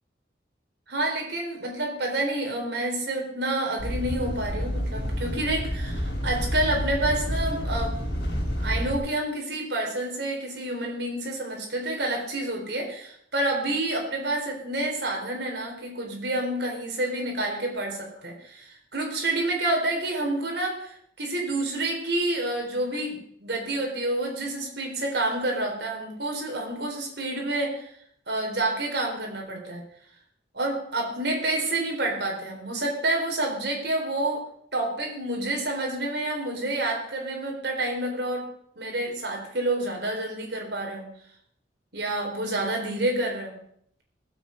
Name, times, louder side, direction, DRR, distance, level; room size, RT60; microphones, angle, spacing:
voice 1, 0.9-7.9 8.6-27.9 28.3-29.8 30.5-34.4 34.7-38.4 38.8-41.1 41.9-43.6, right 2 dB, 60° right, 0 dB, 4.2 m, -28 dB
sound 1, 3.8-9.0, equal, 80° left, 4.6 m, -29 dB
19.0 x 8.3 x 5.4 m, 0.66 s
head